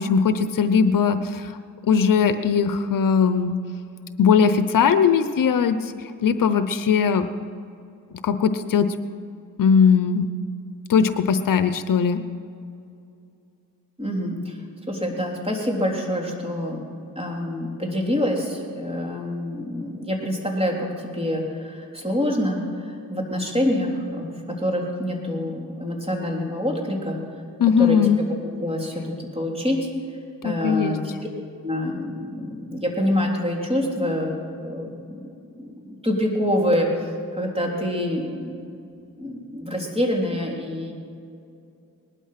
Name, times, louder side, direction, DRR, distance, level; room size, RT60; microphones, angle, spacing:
voice 1, 0.0-1.6 1.8-3.6 4.2-5.8 6.2-7.3 8.2-8.9 9.6-10.3 10.9-12.2 27.6-28.2 30.4-31.0, left 6 dB, 65° left, 10 dB, 0.8 m, -19 dB
voice 2, 14.0-14.6 14.9-16.8 17.2-27.2 27.8-28.3 28.6-29.0 29.3-29.9 30.4-31.1 31.6-35.2 35.6-36.9 37.3-38.5 38.8-38.9 39.2-40.9, left 1 dB, 15° right, 0 dB, 3.6 m, -26 dB
19.5 x 12.0 x 5.9 m, 2.5 s
cardioid pair, 70°, 35 cm